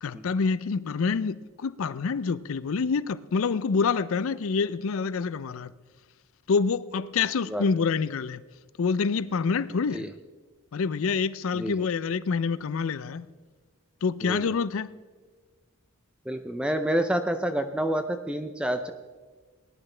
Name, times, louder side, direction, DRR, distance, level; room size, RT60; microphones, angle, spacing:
voice 1, 0.0-5.7 6.5-8.4 8.8-10.1 10.7-13.3 14.0-14.9, left 5 dB, 70° left, 0.4 m, -27 dB
voice 2, 11.5-11.8 14.2-14.5 16.3-18.9, right 1 dB, 5° right, 0.4 m, -28 dB
18.5 x 11.0 x 3.3 m
head